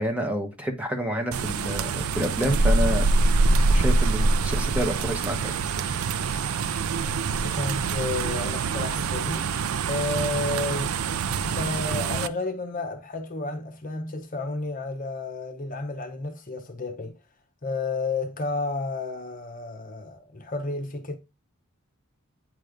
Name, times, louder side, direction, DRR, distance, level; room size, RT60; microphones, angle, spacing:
voice 1, 0.0-3.1 3.7-5.5, equal, 5° right, 1.2 m, -28 dB
sound 1, 1.3-12.3, right 3 dB, 80° right, 0.5 m, -25 dB
voice 2, 7.0-9.5 9.9-11.1 11.4-17.2 17.6-21.2, left 3 dB, 40° left, 0.9 m, -31 dB
9.1 x 3.2 x 5.1 m
head